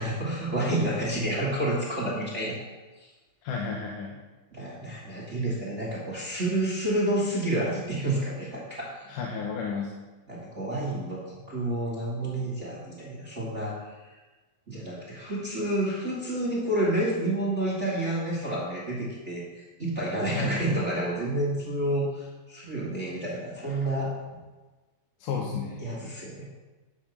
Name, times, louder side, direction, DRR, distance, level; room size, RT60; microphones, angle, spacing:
voice 1, 0.0-2.6 3.0-3.1 4.5-9.0 10.3-13.9 14.7-24.1 25.8-26.4, right 1 dB, 30° right, -6 dB, 1.3 m, -29 dB
voice 2, 3.4-4.2 9.1-10.0 20.3-20.6 25.2-25.8, left 5 dB, 70° left, -2 dB, 2.4 m, -32 dB
12.5 x 5.1 x 5.7 m, 1.2 s
omnidirectional pair, 4.0 m